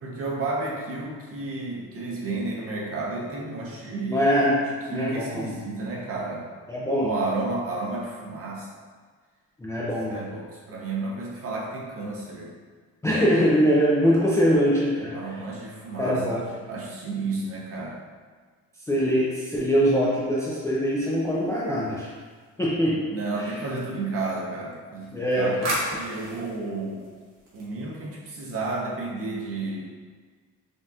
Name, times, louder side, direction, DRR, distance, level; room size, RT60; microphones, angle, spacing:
voice 1, 0.0-4.2 4.9-6.5 7.0-8.7 10.1-12.5 15.1-16.4 16.7-18.0 23.1-25.6 26.0-27.1 27.5-29.9, right 3 dB, 45° right, -2 dB, 0.8 m, -32 dB
voice 2, 4.1-4.6 4.9-5.5 6.7-7.1 9.6-10.2 13.0-15.2 16.0-16.4 18.9-22.1 22.6-23.1 25.1-25.7, equal, 10° left, -7 dB, 0.3 m, -22 dB
sound 1, 20.8-22.6 24.9-28.1, right 1 dB, 75° right, 1.3 m, -36 dB
5.3 x 2.4 x 2.7 m, 1.5 s
cardioid pair, 170°, 33 cm